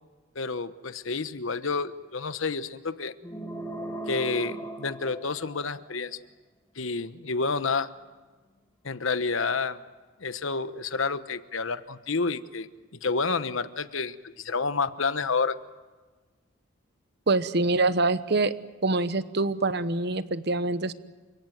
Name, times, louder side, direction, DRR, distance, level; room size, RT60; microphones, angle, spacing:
voice 1, 0.3-3.1 4.1-6.2 6.8-7.9 8.8-9.8 10.2-12.7 13.0-15.6, left 4 dB, 70° left, 12 dB, 1.1 m, -29 dB
sound 1, 3.2-5.9, right 1 dB, 15° left, 2.0 m, -37 dB
voice 2, 17.3-18.5 18.8-20.9, right 3 dB, 50° right, 13 dB, 1.0 m, -25 dB
29.0 x 17.0 x 9.2 m, 1.3 s
head